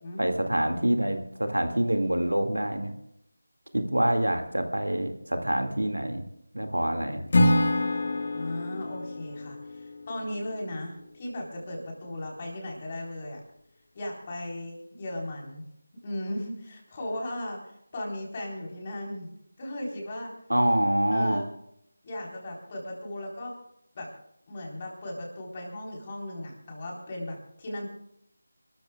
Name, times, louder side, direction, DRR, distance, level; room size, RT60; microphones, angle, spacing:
voice 1, 0.2-2.9 3.7-6.2 6.5-7.3 20.5-21.4, right 1 dB, 85° right, 5 dB, 2.1 m, -26 dB
Acoustic guitar / Strum, 7.3-10.5, left 1 dB, 45° left, 1.4 m, -26 dB
voice 2, 8.3-13.4 13.9-15.6 16.0-19.3 19.6-20.3 21.1-21.5 22.0-23.5 23.9-24.1 24.5-27.9, left 1 dB, 30° left, -1 dB, 4.0 m, -36 dB
30.0 x 13.5 x 2.3 m, 0.76 s
figure-of-eight pair, 165°, 0 cm